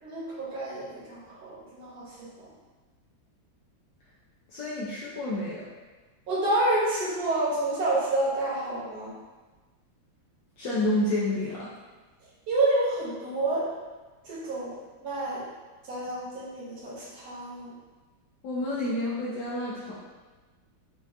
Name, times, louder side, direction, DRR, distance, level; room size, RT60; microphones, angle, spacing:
voice 1, 0.0-2.5 6.3-9.1 12.5-13.7 14.2-14.7 15.0-15.4 15.8-17.7, right 2 dB, 55° right, -7 dB, 1.5 m, -29 dB
voice 2, 4.5-5.6 10.6-11.7 18.4-19.9, left 1 dB, 70° left, -8 dB, 1.3 m, -29 dB
5.6 x 2.4 x 2.7 m, 1.3 s
omnidirectional pair, 2.2 m